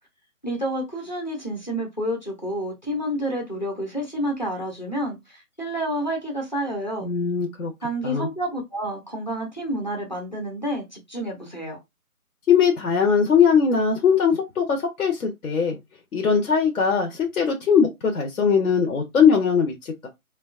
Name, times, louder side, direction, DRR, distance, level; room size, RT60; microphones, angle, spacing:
voice 1, 0.4-7.1 7.8-11.8, equal, 30° left, 0.6 m, -29 dB
voice 2, 7.0-7.7 8.0-8.3 12.5-15.8 16.1-20.1, left 6 dB, 70° left, 0.8 m, -20 dB
2.7 x 2.2 x 2.4 m
hypercardioid pair, 175°, 44 cm